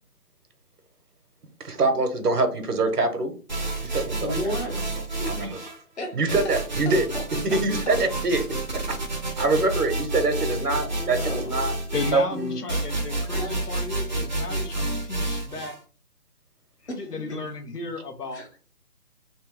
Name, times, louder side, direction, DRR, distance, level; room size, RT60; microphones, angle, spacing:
voice 1, 1.6-3.3 3.8-4.8 5.3-5.6 6.1-7.1 7.4-8.4 8.7-8.8 9.4-11.7 12.1-12.6, right 3 dB, 85° right, 1.2 m, -24 dB
sound 1, 3.5-5.8 6.3-15.8, right 2 dB, 30° right, 0.6 m, -30 dB
voice 2, 4.2-5.4 6.0-6.2 7.1-7.2 7.5-7.6 10.9-11.5 13.3-13.7 16.9-17.0 17.3-17.4 18.3-18.6, left 1 dB, 45° left, 1.4 m, -34 dB
voice 3, 11.9-15.8 17.0-18.4, left 3 dB, 85° left, 1.0 m, -34 dB
3.2 x 3.1 x 3.2 m
figure-of-eight pair, 160°, 46 cm